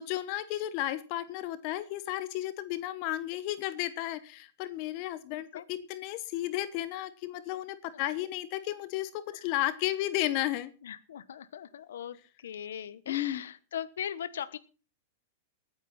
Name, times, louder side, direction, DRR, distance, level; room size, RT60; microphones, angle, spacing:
voice 1, 0.0-10.7 13.1-13.4, left 14 dB, 45° left, 14 dB, 1.1 m, -33 dB
voice 2, 5.5-5.9 9.3-9.5 10.8-14.6, left 9 dB, 90° left, 14 dB, 1.1 m, -40 dB
20.5 x 9.5 x 4.2 m, 0.35 s
supercardioid pair, 145°, 0 cm